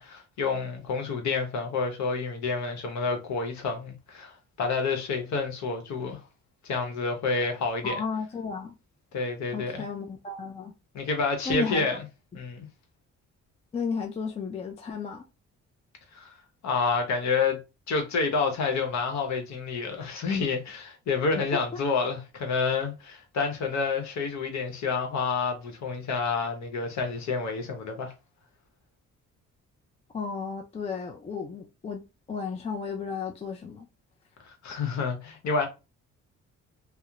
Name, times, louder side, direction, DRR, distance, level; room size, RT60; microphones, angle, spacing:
voice 1, 0.0-6.2 6.6-8.0 9.1-9.9 10.9-12.0 12.3-12.7 16.1-16.3 16.6-17.6 17.9-28.1 34.4-35.7, left 4 dB, 65° left, 0.9 m, -29 dB
voice 2, 7.8-8.7 9.5-10.7 11.5-11.8 13.7-15.2 30.1-32.0 32.3-33.9, left 5 dB, 20° left, 0.3 m, -33 dB
2.8 x 2.0 x 2.4 m
cardioid pair, 90°, 30 cm